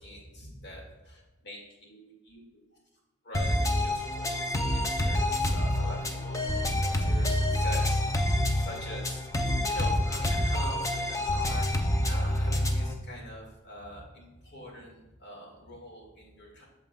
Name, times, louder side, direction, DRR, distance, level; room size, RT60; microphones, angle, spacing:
voice 1, 0.0-2.4 3.2-16.6, equal, 50° left, -1 dB, 2.0 m, -44 dB
sound 1, 3.3-12.9, left 1 dB, 15° left, 0.5 m, -27 dB
8.4 x 6.8 x 2.3 m, 1.0 s
head